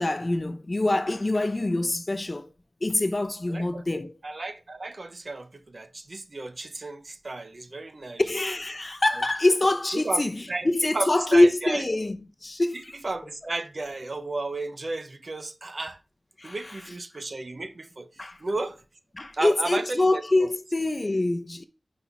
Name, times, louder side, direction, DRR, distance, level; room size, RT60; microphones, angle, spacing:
voice 1, 0.0-2.5 2.8-4.1 8.2-13.0 16.4-16.8 18.2-18.4 19.1-21.6, left 2 dB, 35° left, 0.7 m, -25 dB
voice 2, 3.5-3.8 4.2-8.2 9.9-10.2 10.5-10.7 10.9-11.8 12.7-16.0 16.4-18.1 18.4-18.8 19.3-19.8 20.1-20.5, right 2 dB, 55° right, 0.8 m, -33 dB
6.0 x 3.6 x 5.9 m
wide cardioid pair, 65°, 0 cm